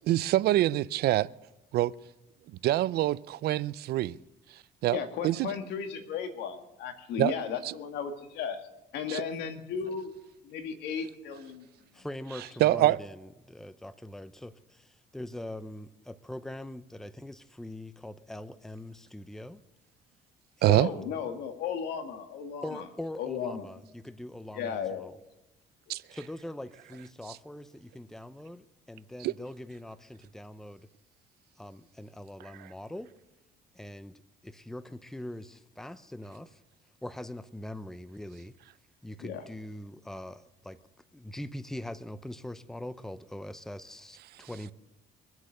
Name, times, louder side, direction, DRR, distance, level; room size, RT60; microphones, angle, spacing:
voice 1, 0.1-1.3 1.7-1.9 2.6-4.2 4.8-5.5 7.2-7.3 7.6-7.7 9.1-9.2 12.6-13.0 20.6-20.9 25.9-26.0 29.2-29.3, right 15 dB, 70° right, 0.5 m, -25 dB
voice 2, 4.9-8.6 8.9-10.1 10.4-11.7 20.7-22.8 23.2-23.7 24.5-25.1 39.2-39.4, left 7 dB, 80° left, 2.0 m, -35 dB
voice 3, 11.9-19.6 20.6-20.9 22.6-25.2 26.1-30.9 31.6-33.1 33.7-36.6 37.0-38.5 39.0-40.8 41.1-44.7, left 1 dB, 5° left, 0.7 m, -42 dB
24.5 x 8.1 x 6.6 m
cardioid pair, 110°, 17 cm